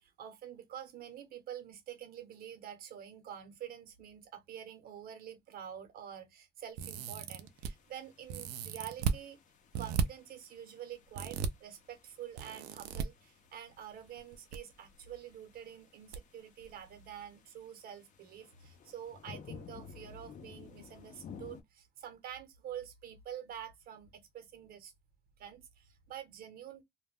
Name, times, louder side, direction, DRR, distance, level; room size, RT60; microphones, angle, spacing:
voice 1, 0.0-9.4 9.8-24.9 25.4-26.8, right 9 dB, 65° right, 0.9 m, -47 dB
sound 1, 6.8-7.7 8.3-9.2 9.7-10.0 11.1-11.5 12.4-13.0 14.2-14.6 14.8-14.9 16.1-16.2 16.6-16.7, right 7 dB, 80° right, 0.5 m, -35 dB
sound 2, 7.3-21.6, left 6 dB, 50° left, 0.6 m, -55 dB
2.3 x 2.1 x 3.4 m
cardioid pair, 110°, 17 cm